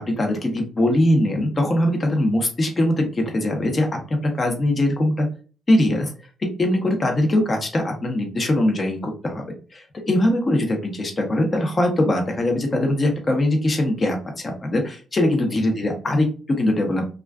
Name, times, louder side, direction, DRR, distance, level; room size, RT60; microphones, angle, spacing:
voice 1, 0.0-5.3 5.7-6.1 6.6-9.5 9.7-17.1, left 1 dB, 30° left, 3 dB, 0.7 m, -21 dB
2.3 x 2.3 x 2.2 m, 0.38 s
cardioid pair, 90°, 0 cm